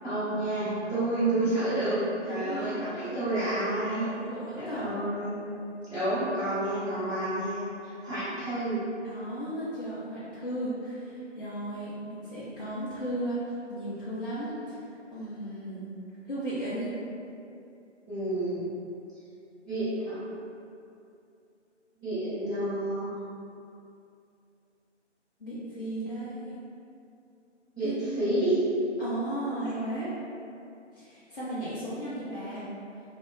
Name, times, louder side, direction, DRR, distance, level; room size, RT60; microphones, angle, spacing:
voice 1, 0.0-4.1 4.6-5.3 5.9-8.8 18.1-18.6 19.6-20.2 22.0-23.1 27.7-27.9 28.2-28.6, right 1 dB, ahead, -29 dB, 0.8 m, -29 dB
voice 2, 2.3-3.2 4.0-5.0 9.0-13.4 13.7-14.8 15.1-15.9 16.3-16.9 25.4-26.6 27.8-28.2 29.0-30.1 31.0-32.7, right 1 dB, 45° left, -11 dB, 0.6 m, -35 dB
2.1 x 2.1 x 3.7 m, 2.6 s
figure-of-eight pair, 150°, 36 cm